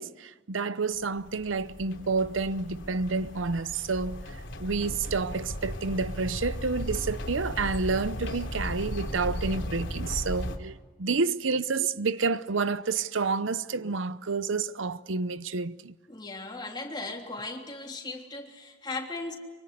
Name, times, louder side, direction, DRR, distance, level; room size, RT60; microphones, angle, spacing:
voice 1, 0.0-15.9, right 4 dB, 90° right, 0.8 m, -29 dB
sound 1, 1.0-10.6, left 1 dB, 80° left, 3.0 m, -36 dB
voice 2, 16.1-19.4, left 3 dB, 25° left, 3.3 m, -37 dB
25.0 x 24.0 x 8.3 m
head